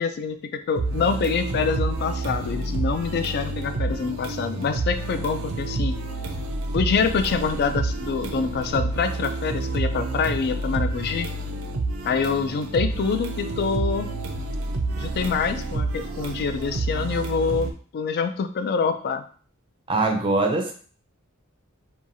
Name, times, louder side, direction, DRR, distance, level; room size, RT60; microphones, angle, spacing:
voice 1, 0.0-6.0 6.7-11.3 12.0-14.2 15.0-19.2, left 5 dB, 50° left, 8 dB, 0.3 m, -26 dB
sound 1, 0.8-17.7, right 2 dB, 85° right, 0.4 m, -29 dB
voice 2, 19.9-20.7, right 2 dB, 25° right, 3 dB, 0.5 m, -22 dB
2.9 x 2.3 x 2.6 m, 0.43 s
head